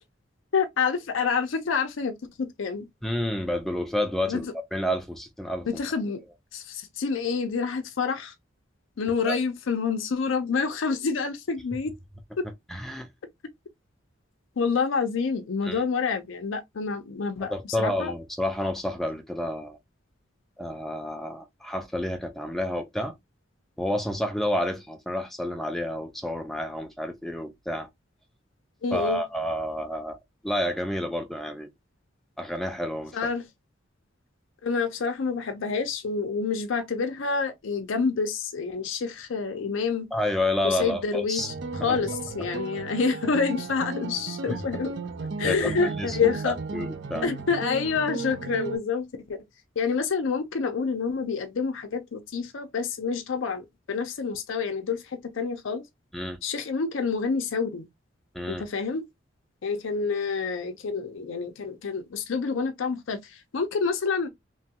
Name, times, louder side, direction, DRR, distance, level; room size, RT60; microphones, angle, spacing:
voice 1, 0.5-2.9 4.3-4.4 5.7-6.2 6.5-8.3 9.0-11.9 12.4-12.5 14.6-18.1 28.8-29.2 33.1-33.4 34.6-40.1 40.6-41.5 41.8-44.9 45.4-46.5 47.2-49.4 49.8-55.8 56.4-57.9 58.5-59.0 59.6-64.3, left 5 dB, 75° left, 0.5 m, -28 dB
voice 2, 3.0-4.4 4.7-5.7 9.3-9.4 12.7-13.1 15.6-15.8 17.4-19.8 20.6-23.2 23.8-27.9 28.9-30.2 30.4-31.7 32.4-33.2 40.1-41.5 41.8-42.0 44.5-44.8 45.4-47.2 56.1-56.4 58.3-58.6, left 1 dB, ahead, 0.4 m, -30 dB
sound 1, 41.4-48.8, right 4 dB, 60° right, 0.5 m, -35 dB
3.1 x 2.2 x 2.7 m
head